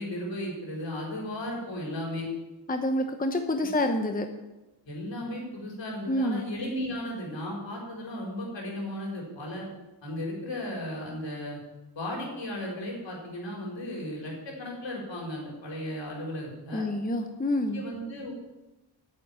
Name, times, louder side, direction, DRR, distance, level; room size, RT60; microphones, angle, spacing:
voice 1, 0.0-2.3 4.8-9.7 10.0-11.6 11.9-16.8 17.7-18.3, left 1 dB, 65° left, -2 dB, 4.8 m, -35 dB
voice 2, 2.7-4.3 6.1-6.5 16.7-17.8, left 1 dB, 20° left, 5 dB, 1.0 m, -27 dB
9.1 x 7.7 x 9.0 m, 1.0 s
cardioid pair, 75°, 46 cm